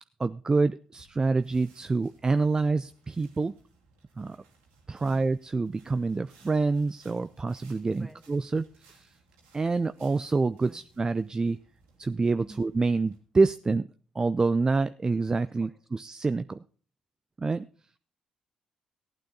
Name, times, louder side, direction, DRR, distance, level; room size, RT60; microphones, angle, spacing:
voice 1, 0.2-3.5 4.2-4.4 4.9-9.1 9.5-11.6 12.0-13.9 14.1-16.6 17.4-17.7, right 3 dB, 30° right, 13 dB, 0.5 m, -27 dB
sound 1, 1.0-13.2, right 4 dB, 90° right, 2.7 m, -61 dB
voice 2, 8.0-8.2 10.6-10.8 12.4-12.6 15.6-15.7, right 1 dB, 10° right, 8 dB, 2.1 m, -47 dB
15.0 x 9.1 x 3.9 m, 0.41 s
hypercardioid pair, 50°, 2 cm